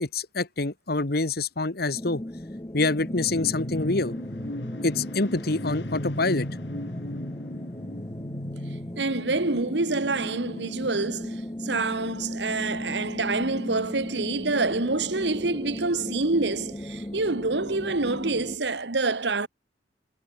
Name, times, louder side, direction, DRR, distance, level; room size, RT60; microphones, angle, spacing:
voice 1, 0.0-2.2 2.7-4.1 4.8-6.5, left 3 dB, 60° left, 1.6 m, -26 dB
sound 1, 1.9-18.6, left 1 dB, 20° left, 1.2 m, -37 dB
sound 2, 3.0-10.9, left 1 dB, 85° left, 3.3 m, -36 dB
voice 2, 9.0-19.5, right 3 dB, 80° right, 1.6 m, -27 dB
head